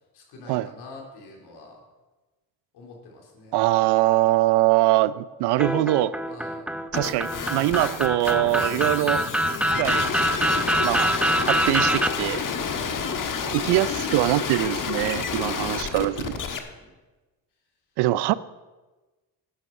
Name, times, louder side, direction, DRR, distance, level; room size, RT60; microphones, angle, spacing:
voice 1, 0.1-1.8 2.7-3.6 6.3-6.7 12.6-13.0 15.4-16.1 16.6-16.9, left 3 dB, 75° left, -1 dB, 3.7 m, -46 dB
voice 2, 3.5-6.2 6.9-9.2 9.8-10.1 10.8-11.1 11.4-12.4 13.5-16.4 18.0-18.3, right 16 dB, 80° right, 18 dB, 0.6 m, -23 dB
sound 1, 5.6-12.1, right 1 dB, 5° right, 0.7 m, -25 dB
sound 2, 6.9-16.6, left 6 dB, 50° left, 1.4 m, -30 dB
sound 3, 8.3-14.1, left 8 dB, 35° left, 0.6 m, -40 dB
12.5 x 9.0 x 5.5 m, 1.2 s
supercardioid pair, 70°, 40 cm